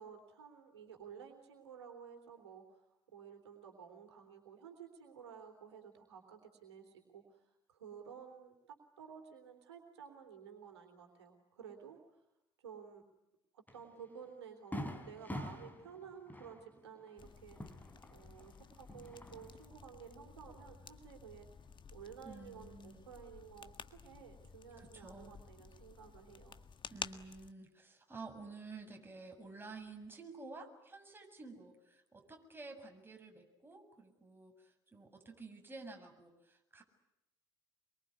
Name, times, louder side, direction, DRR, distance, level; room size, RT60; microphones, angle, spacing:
voice 1, 0.0-2.8 3.1-7.4 7.7-12.0 12.6-13.0 13.5-21.5 21.9-26.6, right 7 dB, 80° right, 3 dB, 3.4 m, -53 dB
Fireworks, 13.7-13.8 14.2-14.3 14.7-18.5 18.8-19.7, left 1 dB, 10° left, 4.3 m, -46 dB
sound 1, 17.2-27.5, left 6 dB, 35° left, 1.7 m, -52 dB
voice 2, 22.2-23.0 24.8-25.3 26.9-36.8, right 3 dB, 15° right, 3 dB, 7.4 m, -51 dB
26.5 x 23.5 x 9.6 m, 0.91 s
figure-of-eight pair, 55°, 14 cm